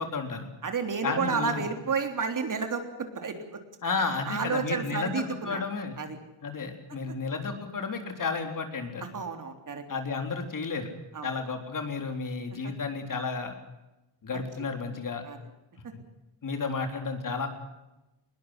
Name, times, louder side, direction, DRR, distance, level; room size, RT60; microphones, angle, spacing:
voice 1, 0.0-0.5 1.0-1.7 3.8-6.0 6.4-9.0 9.9-10.9 11.2-13.5 14.2-15.2 16.4-17.5, left 4 dB, 45° left, 5 dB, 3.9 m, -32 dB
voice 2, 0.6-3.6 4.3-5.6 6.0-6.2 7.1-7.2 9.1-9.8 11.1-11.3 12.6-12.7 14.3-14.5 15.2-15.4, right 5 dB, 45° right, 6 dB, 3.6 m, -31 dB
21.0 x 21.0 x 8.1 m, 0.98 s
cardioid pair, 120°, 45 cm